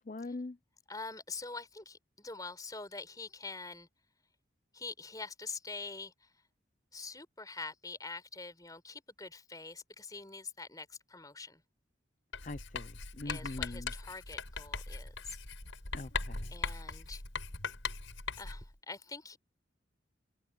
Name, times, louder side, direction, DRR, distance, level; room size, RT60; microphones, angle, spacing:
voice 1, 0.1-0.6 12.4-13.9 15.9-16.5, left 2 dB, 40° left, 0.6 m, -42 dB
voice 2, 0.9-3.9 4.7-6.3 6.9-11.6 13.2-15.4 16.5-17.2 18.4-19.4, left 3 dB, 20° left, 4.3 m, -45 dB
Writing, 12.3-18.7, left 4 dB, 85° left, 6.2 m, -40 dB
head